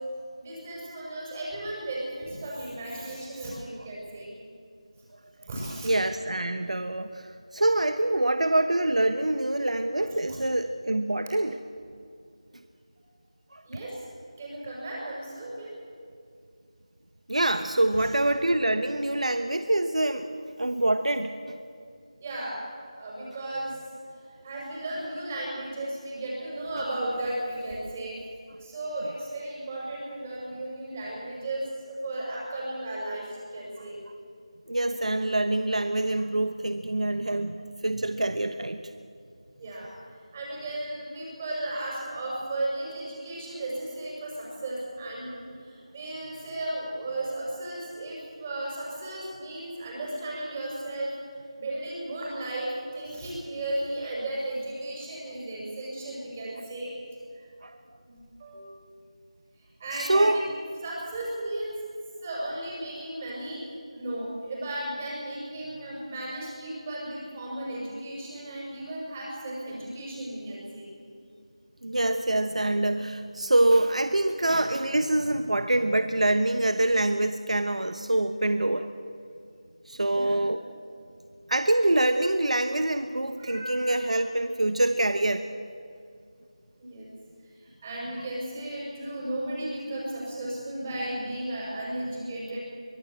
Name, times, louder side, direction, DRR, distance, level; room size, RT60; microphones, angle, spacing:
voice 1, 0.4-4.3 5.5-5.9 10.3-10.4 13.6-14.0 14.4-15.7 17.9-18.1 22.2-22.6 22.9-23.8 24.1-28.2 28.6-34.0 39.6-51.1 51.6-56.9 57.3-57.5 58.0-58.8 59.6-60.4 60.8-61.8 62.2-63.6 63.9-70.9 80.1-80.4 83.4-84.1 86.8-87.1 87.4-92.6, right 1 dB, 20° right, -4 dB, 6.2 m, -35 dB
voice 2, 5.8-11.6 13.5-13.6 17.3-20.3 20.6-21.6 33.8-33.9 34.7-38.8 57.6-57.8 59.9-60.4 71.8-78.9 79.9-80.6 81.5-85.5, right 1 dB, 85° right, 9 dB, 1.2 m, -25 dB
23.5 x 18.0 x 8.1 m, 2.3 s
figure-of-eight pair, 170°, 4 cm